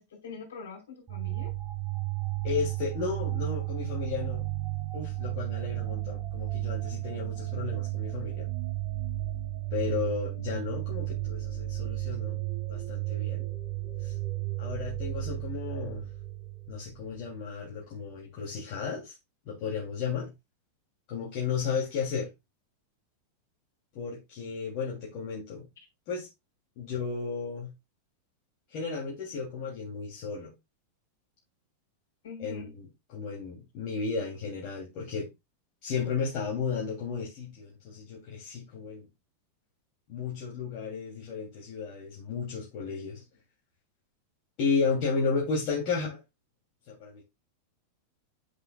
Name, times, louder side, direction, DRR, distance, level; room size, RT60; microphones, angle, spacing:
voice 1, 0.0-1.5 32.2-32.7, left 5 dB, 60° left, 4.8 m, -43 dB
sound 1, 1.1-17.4, right 17 dB, 25° right, 3.9 m, -33 dB
voice 2, 2.4-4.5 4.9-8.5 9.7-12.4 12.7-13.5 14.0-14.1 14.6-16.1 16.7-19.1 19.4-20.3 21.1-22.3 23.9-25.7 26.1-26.3 26.8-27.7 28.7-30.5 32.4-35.3 35.8-39.1 40.1-43.2 44.6-46.2 46.9-47.2, left 5 dB, 45° left, 3.2 m, -33 dB
8.8 x 7.8 x 2.4 m
figure-of-eight pair, 90°, 0 cm